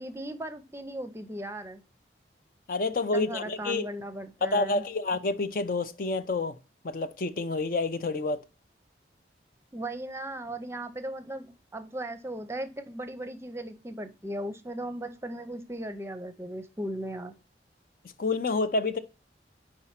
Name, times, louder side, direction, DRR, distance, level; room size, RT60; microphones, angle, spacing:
voice 1, 0.0-1.8 3.1-4.8 9.7-17.3, right 1 dB, 15° right, 0.6 m, -37 dB
voice 2, 2.7-3.9 4.4-6.6 6.8-8.4 18.2-19.0, left 3 dB, 50° left, 0.5 m, -28 dB
4.9 x 4.3 x 5.7 m
head